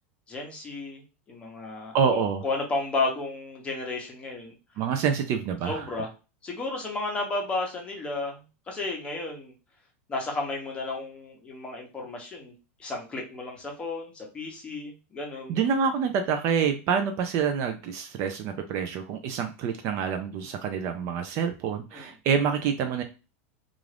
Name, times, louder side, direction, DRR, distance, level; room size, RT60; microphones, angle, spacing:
voice 1, 0.3-1.0 1.3-4.6 5.6-6.1 6.4-8.4 8.7-9.5 10.1-12.5 12.8-15.6 21.9-22.1, left 3 dB, 15° left, 0 dB, 0.8 m, -33 dB
voice 2, 1.9-2.4 4.8-5.8 15.5-23.0, right 6 dB, 40° right, 6 dB, 0.3 m, -27 dB
2.4 x 2.4 x 3.2 m, 0.31 s
supercardioid pair, 155°, 7 cm